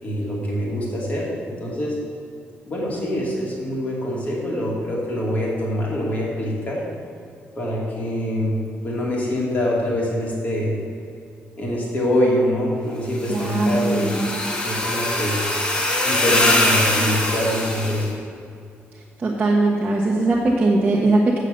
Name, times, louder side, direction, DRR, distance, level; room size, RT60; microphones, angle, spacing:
voice 1, 0.0-2.0 2.6-6.8 7.6-10.8 11.6-14.2 14.6-15.5 16.0-18.2, equal, 35° left, -4 dB, 2.6 m, -24 dB
sound 1, 13.1-18.1, left 1 dB, 20° left, 1.5 m, -22 dB
voice 2, 13.3-14.2 19.2-21.4, right 2 dB, 35° right, -3 dB, 1.1 m, -20 dB
8.4 x 6.5 x 6.7 m, 2.4 s
cardioid pair, 120°, 5 cm